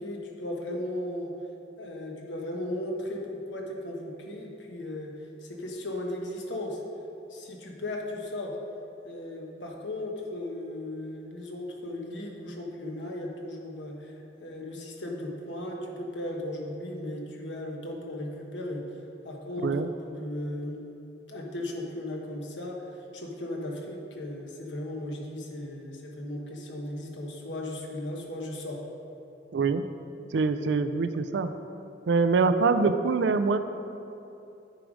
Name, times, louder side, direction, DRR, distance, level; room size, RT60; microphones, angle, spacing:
voice 1, 0.0-1.3 1.8-5.1 5.4-6.8 7.3-8.6 9.0-18.8 19.2-19.7 20.0-20.8 21.3-28.8, left 1 dB, 75° left, 0 dB, 1.2 m, -36 dB
voice 2, 29.5-29.8 30.3-31.5 32.1-33.6, right 4 dB, 65° right, 10 dB, 0.4 m, -24 dB
9.2 x 4.9 x 5.1 m, 2.8 s
head